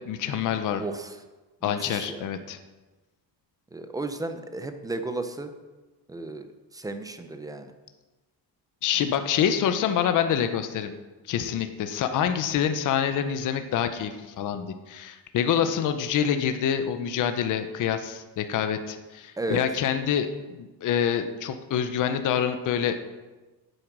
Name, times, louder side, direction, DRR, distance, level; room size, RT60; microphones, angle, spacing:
voice 1, 0.1-0.8 1.6-2.6 8.8-10.9 11.3-23.0, left 8 dB, 50° left, 8 dB, 0.7 m, -26 dB
voice 2, 0.8-1.2 1.6-2.3 3.7-5.5 6.1-6.4 6.7-7.7 19.4-19.6, right 2 dB, 10° right, 8 dB, 0.5 m, -34 dB
8.0 x 7.8 x 6.0 m, 1.2 s
cardioid pair, 175°, 41 cm